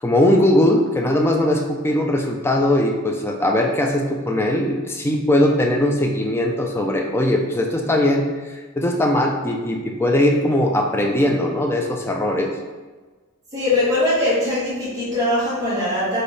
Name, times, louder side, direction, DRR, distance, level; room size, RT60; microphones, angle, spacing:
voice 1, 0.0-12.5, left 1 dB, 10° left, 2 dB, 0.3 m, -20 dB
voice 2, 13.5-16.2, left 1 dB, 15° right, -10 dB, 1.5 m, -21 dB
3.2 x 2.7 x 4.0 m, 1.3 s
head